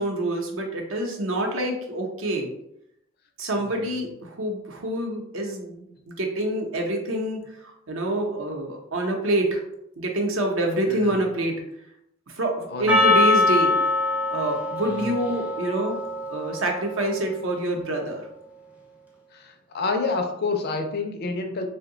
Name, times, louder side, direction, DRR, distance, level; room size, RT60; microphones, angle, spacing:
voice 1, 0.0-2.5 3.4-9.6 10.0-11.6 12.3-13.8 14.3-16.0 16.3-18.3, right 1 dB, 75° right, 2 dB, 0.7 m, -26 dB
voice 2, 12.7-13.2 14.8-15.1 19.3-21.7, left 3 dB, 50° left, 5 dB, 0.4 m, -29 dB
Percussion, 12.9-17.4, left 2 dB, 5° right, 0.4 m, -23 dB
2.7 x 2.1 x 3.7 m, 0.79 s
head